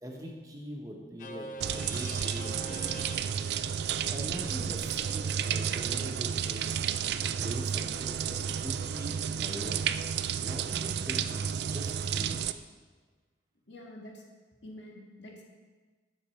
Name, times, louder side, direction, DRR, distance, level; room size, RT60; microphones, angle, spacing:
voice 1, 0.0-3.1 4.1-6.8 7.4-9.8 10.4-12.4, equal, 20° right, 0 dB, 1.1 m, -42 dB
sound 1, 1.2-9.1, equal, 45° left, 0.7 m, -48 dB
sound 2, 1.6-12.5, right 8 dB, 65° right, 0.3 m, -32 dB
voice 2, 13.7-14.2 14.6-15.4, left 1 dB, 85° left, 0 dB, 1.7 m, -47 dB
10.0 x 6.8 x 4.4 m, 1.4 s
head